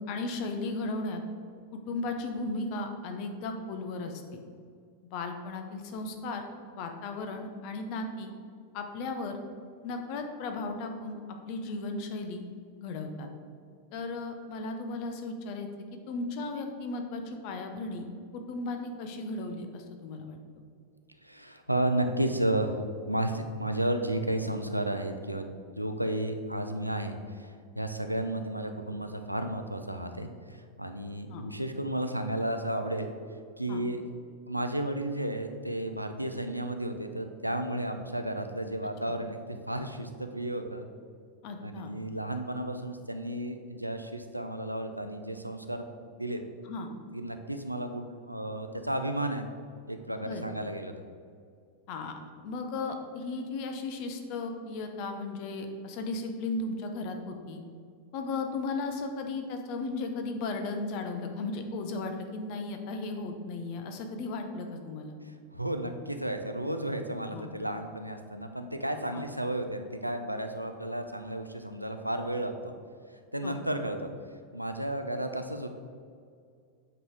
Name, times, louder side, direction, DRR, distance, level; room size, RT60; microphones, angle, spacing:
voice 1, 0.1-1.2 1.7-4.4 5.1-6.4 6.8-8.3 8.7-9.4 9.8-11.2 11.4-12.4 12.8-13.3 13.9-15.7 16.1-18.1 18.3-20.4 31.3-31.4 33.7-33.8 41.4-41.9 46.6-46.9 50.2-50.4 51.9-57.6 58.1-65.2 67.3-67.5 69.1-69.3 73.4-73.6, left 3 dB, 45° left, 5 dB, 0.8 m, -35 dB
voice 2, 21.2-33.1 33.6-34.0 34.5-39.4 39.7-40.9 41.6-46.4 47.1-49.5 49.9-51.0 65.2-72.7 73.3-74.1 74.5-75.7, right 1 dB, 90° right, 6 dB, 0.5 m, -33 dB
7.9 x 4.0 x 4.8 m, 2.2 s
figure-of-eight pair, 90°, 0 cm